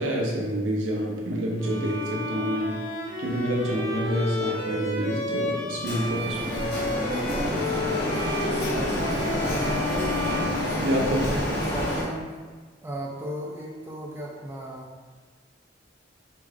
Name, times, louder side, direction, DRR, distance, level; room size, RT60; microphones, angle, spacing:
voice 1, 0.0-2.8 3.2-6.7 10.8-11.3, equal, 75° right, -2 dB, 0.7 m, -27 dB
Bowed string instrument, 1.6-11.3, left 1 dB, 80° left, 0.8 m, -32 dB
Printer, 5.8-12.0, left 1 dB, 60° left, 1.2 m, -28 dB
voice 2, 8.4-12.4 12.8-14.9, right 1 dB, 15° right, -3 dB, 0.3 m, -36 dB
3.4 x 2.4 x 3.2 m, 1.4 s
head